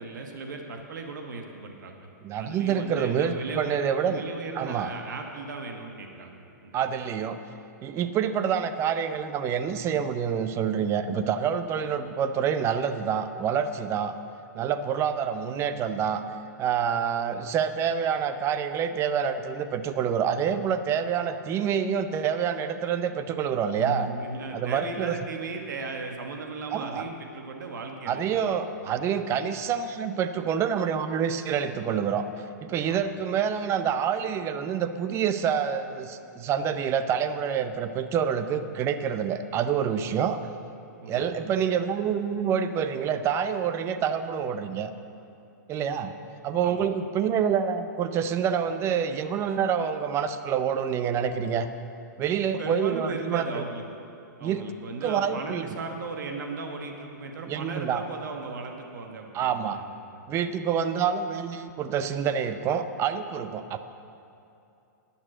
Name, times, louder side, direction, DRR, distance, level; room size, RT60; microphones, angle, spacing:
voice 1, 0.0-2.0 2.4-3.7 4.0-6.8 23.8-28.2 28.8-29.0 32.9-33.0 41.0-41.3 46.6-46.9 52.6-53.8 54.4-60.1 60.4-60.5, right 3 dB, 80° right, 3 dB, 1.1 m, -36 dB
voice 2, 2.2-4.2 4.5-4.9 6.7-7.4 7.8-14.1 14.5-16.2 16.6-24.1 24.5-25.2 26.7-27.1 28.1-32.3 32.6-40.4 41.1-44.9 45.7-46.1 46.4-51.7 52.2-53.6 54.4-54.6 55.0-55.8 57.5-58.0 59.3-59.8 60.3-63.8, right 7 dB, 25° right, 10 dB, 0.5 m, -27 dB
10.5 x 6.2 x 7.5 m, 2.7 s
hypercardioid pair, 130°, 10 cm